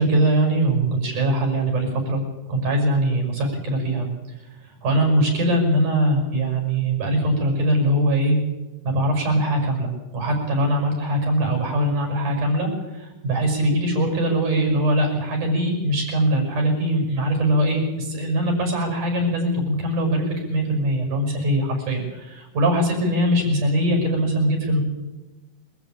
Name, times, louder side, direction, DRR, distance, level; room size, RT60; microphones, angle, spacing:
voice 1, 0.0-2.2 2.5-4.1 4.8-8.4 8.8-24.8, right 1 dB, 90° right, 3 dB, 7.5 m, -22 dB
23.5 x 14.0 x 8.8 m, 1.1 s
omnidirectional pair, 3.5 m